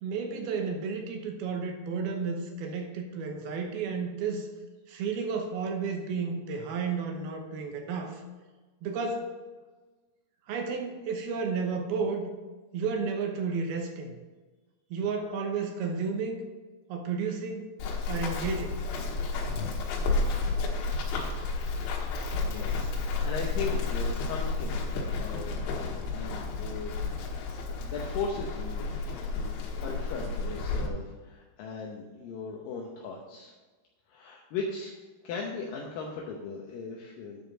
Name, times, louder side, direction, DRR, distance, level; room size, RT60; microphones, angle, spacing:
voice 1, 0.0-4.5 4.9-8.2 8.8-9.3 10.5-12.3 12.7-14.2 14.9-16.4 16.9-17.7 18.1-18.8, right 5 dB, 70° right, 3 dB, 2.7 m, -32 dB
Run, 17.8-30.9, left 4 dB, 90° left, 3.6 m, -31 dB
voice 2, 22.4-28.9 29.3-33.5 34.1-35.0 35.2-37.4, left 4 dB, 75° left, -1 dB, 2.1 m, -38 dB
10.0 x 5.1 x 6.3 m, 1.3 s
omnidirectional pair, 5.1 m